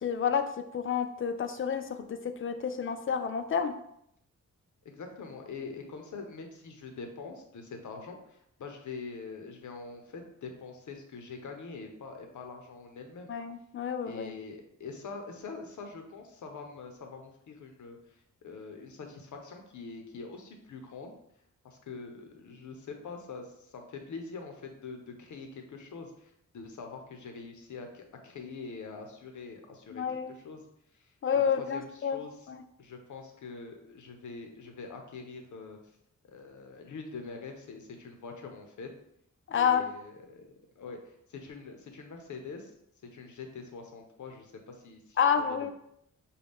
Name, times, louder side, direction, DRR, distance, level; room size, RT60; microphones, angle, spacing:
voice 1, 0.0-3.7 13.3-14.3 29.9-30.3 31.2-32.2 32.5-32.6 39.5-39.9 45.2-45.7, left 7 dB, 40° left, 8 dB, 0.4 m, -29 dB
voice 2, 4.8-13.3 14.0-21.1 21.6-30.0 30.3-30.6 30.9-32.5 32.8-35.8 36.2-38.9 39.5-42.7 43.1-45.7, left 4 dB, 70° left, 4 dB, 0.7 m, -44 dB
5.4 x 2.3 x 3.5 m, 0.74 s
wide cardioid pair, 150°, 31 cm